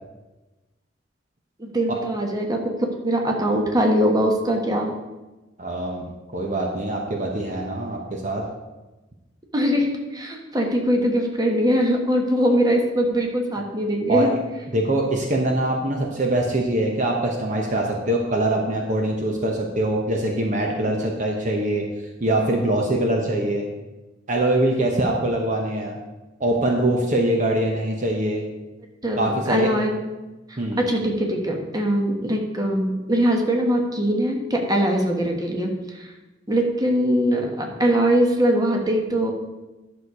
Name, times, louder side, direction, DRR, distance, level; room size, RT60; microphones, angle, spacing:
voice 1, 1.6-2.6 3.0-4.9 9.5-14.3 29.0-30.1 30.5-36.1 36.5-39.3, equal, 20° right, 1 dB, 1.3 m, -22 dB
voice 2, 5.6-8.4 14.1-14.3 14.7-21.8 22.2-23.7 24.3-26.0 26.4-28.4 29.1-29.7 30.6-30.8, right 1 dB, 40° right, 1 dB, 1.0 m, -23 dB
11.0 x 6.5 x 4.7 m, 1.1 s
head